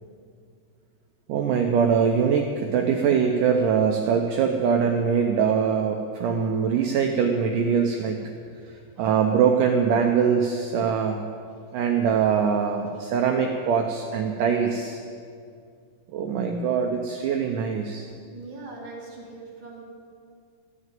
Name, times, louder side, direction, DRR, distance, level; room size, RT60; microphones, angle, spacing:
voice 1, 1.3-8.2 8.7-11.3 11.7-15.0 16.1-18.1, right 6 dB, 85° right, 3 dB, 1.8 m, -23 dB
voice 2, 18.3-19.8, right 3 dB, 35° right, -4 dB, 2.3 m, -41 dB
13.5 x 6.6 x 9.0 m, 2.3 s
omnidirectional pair, 4.6 m